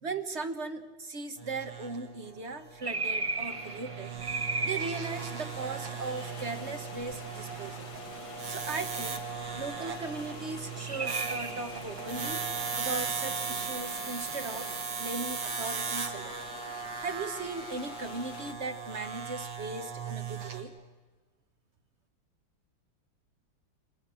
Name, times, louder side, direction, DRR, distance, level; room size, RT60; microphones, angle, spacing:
voice 1, 0.0-4.1 4.6-7.9 8.5-9.2 9.5-12.4 12.7-16.4 17.0-20.7, right 3 dB, 40° right, 9 dB, 1.2 m, -38 dB
sound 1, 1.4-20.6, right 5 dB, 85° right, 2.8 m, -38 dB
sound 2, 2.8-14.8, right 3 dB, 25° right, 0.7 m, -39 dB
sound 3, 5.0-18.5, left 7 dB, 60° left, 1.6 m, -48 dB
29.0 x 25.0 x 7.6 m, 1.3 s
omnidirectional pair, 2.1 m